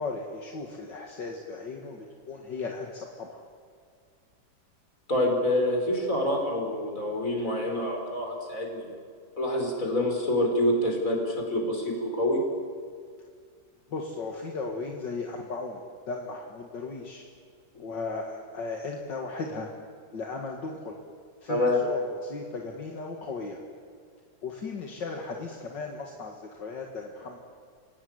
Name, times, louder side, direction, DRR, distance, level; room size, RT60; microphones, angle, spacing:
voice 1, 0.0-3.4 13.9-15.8 16.1-17.2 17.8-19.7 20.1-21.0 21.4-23.6 24.4-27.4, left 3 dB, 70° left, 1 dB, 2.7 m, -36 dB
voice 2, 5.1-8.9 9.4-12.4 21.5-21.8, left 1 dB, 45° left, 1 dB, 5.6 m, -26 dB
28.5 x 17.5 x 9.8 m, 2.1 s
omnidirectional pair, 2.0 m